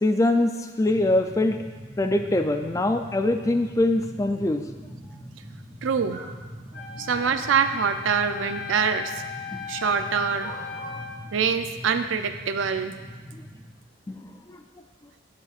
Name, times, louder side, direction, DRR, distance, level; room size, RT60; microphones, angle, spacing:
voice 1, 0.0-1.6 2.0-4.6 9.5-9.6 14.1-14.2, left 2 dB, 15° left, 6 dB, 0.3 m, -23 dB
sound 1, 0.9-13.7, equal, 20° right, 0.8 m, -42 dB
voice 2, 5.8-6.3 7.0-9.2 9.7-10.5 11.3-13.0, right 6 dB, 85° right, 9 dB, 0.5 m, -25 dB
sound 2, 6.0-6.3 7.6-7.7 10.4-11.0, right 3 dB, 40° right, 1.9 m, -41 dB
Wind instrument woodwind instrument, 6.7-11.2, left 7 dB, 60° left, 2.4 m, -37 dB
12.5 x 5.3 x 2.4 m, 1.4 s
head